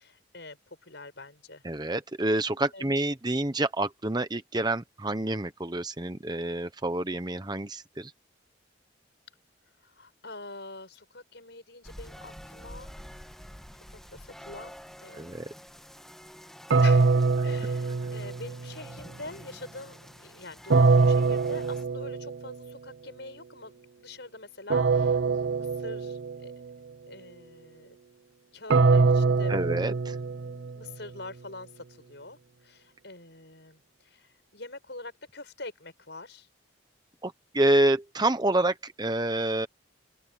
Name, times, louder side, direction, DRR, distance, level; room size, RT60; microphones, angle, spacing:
voice 1, 0.0-1.6 2.7-2.9 9.8-13.0 13.9-15.4 16.8-26.5 27.1-28.0 28.5-29.5 30.3-36.5, left 2 dB, 60° left, 7.1 m, -45 dB
voice 2, 1.6-8.1 15.2-15.5 29.5-30.2 37.2-39.7, right 1 dB, 20° right, 1.0 m, -28 dB
sound 1, 11.8-21.8, equal, ahead, 2.0 m, -48 dB
sound 2, 16.7-18.8 20.7-22.5 24.7-26.5 28.7-30.9, right 4 dB, 70° right, 0.7 m, -23 dB
open air
head